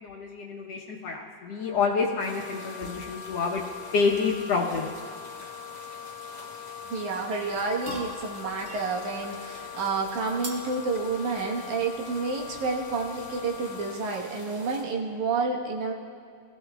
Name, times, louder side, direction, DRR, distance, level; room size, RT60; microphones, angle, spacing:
voice 1, 0.0-4.9, left 4 dB, 65° left, -1 dB, 1.8 m, -28 dB
Wind instrument woodwind instrument, 1.6-14.1, left 10 dB, 85° left, 2.3 m, -42 dB
sound 1, 2.2-14.8, left 1 dB, 15° left, 2.9 m, -47 dB
voice 2, 6.9-15.9, right 4 dB, 75° right, 0 dB, 2.6 m, -29 dB
sound 2, 7.4-13.8, right 2 dB, 55° right, 0.8 m, -46 dB
21.5 x 16.0 x 2.3 m, 2.3 s
omnidirectional pair, 3.5 m